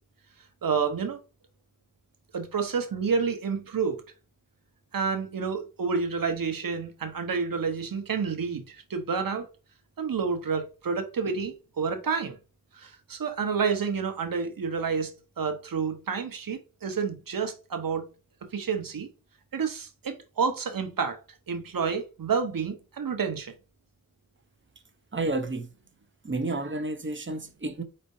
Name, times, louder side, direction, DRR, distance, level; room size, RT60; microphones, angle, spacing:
voice 1, 0.6-1.2 2.3-4.0 4.9-9.5 10.0-12.4 12.7-15.1 15.4-18.0 18.5-19.1 19.5-21.2 21.5-23.5, right 5 dB, 80° right, 1.0 m, -29 dB
voice 2, 25.1-25.7 26.2-27.8, right 2 dB, 35° right, 0.9 m, -31 dB
4.4 x 4.3 x 2.7 m
wide cardioid pair, 55°, 33 cm